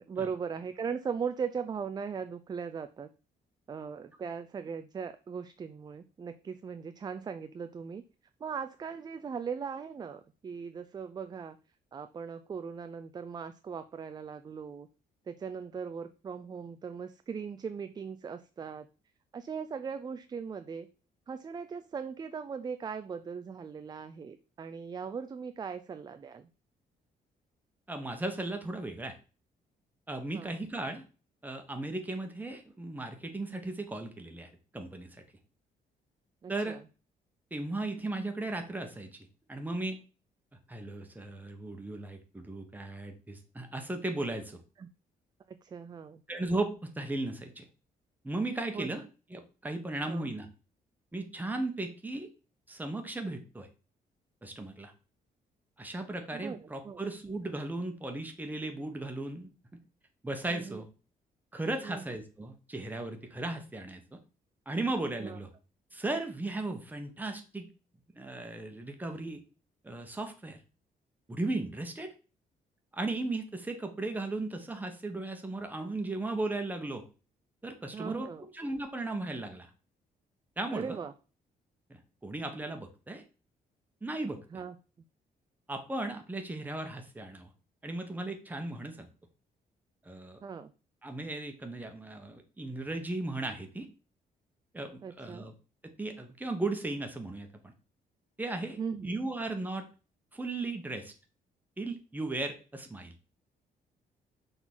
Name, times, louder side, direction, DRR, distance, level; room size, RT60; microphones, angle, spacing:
voice 1, 0.0-3.1 3.7-8.0 8.4-11.6 11.9-14.9 15.3-18.9 19.3-20.9 21.3-26.5 30.3-30.6 36.4-36.8 44.8-44.9 45.5-46.2 48.7-48.9 50.1-50.3 56.3-57.0 60.5-60.8 61.8-62.1 65.2-65.4 77.9-78.5 80.7-81.1 84.5-84.8 90.4-90.7 95.0-95.5 98.8-99.1, right 6 dB, 25° right, 10 dB, 0.4 m, -39 dB
voice 2, 27.9-29.2 30.1-31.0 31.4-35.2 36.5-36.8 37.5-39.2 39.5-40.0 40.7-44.6 46.3-47.6 48.2-49.0 49.3-50.5 51.1-52.3 52.7-53.7 54.4-54.9 55.8-59.5 60.2-60.9 61.5-64.2 64.7-65.5 65.9-67.7 68.1-69.4 69.8-70.6 71.3-72.1 72.9-77.0 77.6-79.7 80.6-81.0 81.9-83.2 84.0-84.4 85.7-87.5 87.8-89.1 90.0-90.4 91.0-93.9 94.7-95.5 96.0-97.7 98.4-99.8 100.3-101.1 101.8-103.1, right 2 dB, 10° right, 5 dB, 1.2 m, -36 dB
6.0 x 3.9 x 6.1 m, 0.35 s
cardioid pair, 140°, 16 cm